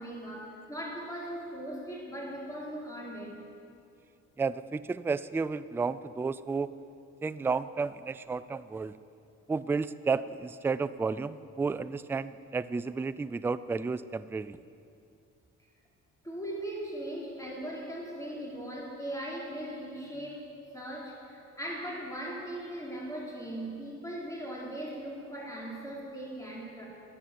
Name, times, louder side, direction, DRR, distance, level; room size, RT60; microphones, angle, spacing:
voice 1, 0.0-3.4 16.2-26.9, right 1 dB, 10° left, -4 dB, 4.2 m, -39 dB
voice 2, 4.4-6.7 7.2-8.9 9.5-14.6, right 4 dB, 10° right, 14 dB, 0.3 m, -32 dB
11.0 x 10.0 x 8.4 m, 2.6 s
cardioid pair, 90°, 30 cm